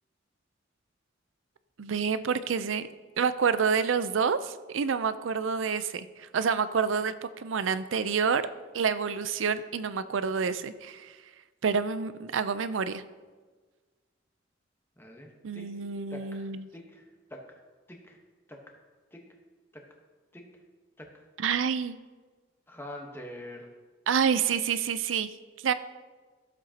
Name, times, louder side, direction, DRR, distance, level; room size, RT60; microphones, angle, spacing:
voice 1, 1.8-2.9 3.2-8.4 8.7-11.1 11.6-13.0 15.4-16.7 21.4-22.0 24.1-25.3 25.6-25.7, right 6 dB, 90° right, 13 dB, 0.5 m, -28 dB
voice 2, 15.0-15.7 16.1-16.5 16.7-17.6 17.9-18.2 18.5-18.6 19.1-19.2 19.7-19.8 20.3-20.4 21.0-21.2 22.7-23.7, left 1 dB, 10° left, 1 dB, 1.1 m, -45 dB
14.0 x 7.6 x 2.8 m, 1.4 s
head